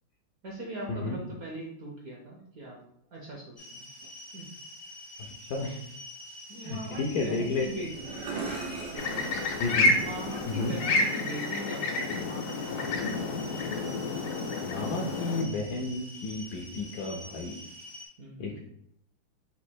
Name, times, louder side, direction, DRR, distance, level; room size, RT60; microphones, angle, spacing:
voice 1, 0.4-2.8 3.1-3.9 4.3-4.4 6.5-8.2 8.9-9.2 9.9-13.1 18.2-18.6, right 1 dB, 60° right, -1 dB, 1.0 m, -40 dB
sound 1, 3.6-18.1, left 1 dB, 55° left, 0.4 m, -46 dB
voice 2, 6.7-7.6 9.6-10.0 10.6-10.7 14.6-17.6 18.4-18.6, left 3 dB, 70° left, 0 dB, 0.9 m, -32 dB
sound 2, 7.2-10.8, right 3 dB, 85° right, 1.8 m, -40 dB
sound 3, 9.0-15.4, left 2 dB, 85° left, 1.6 m, -29 dB
4.2 x 2.6 x 4.4 m, 0.73 s
omnidirectional pair, 2.2 m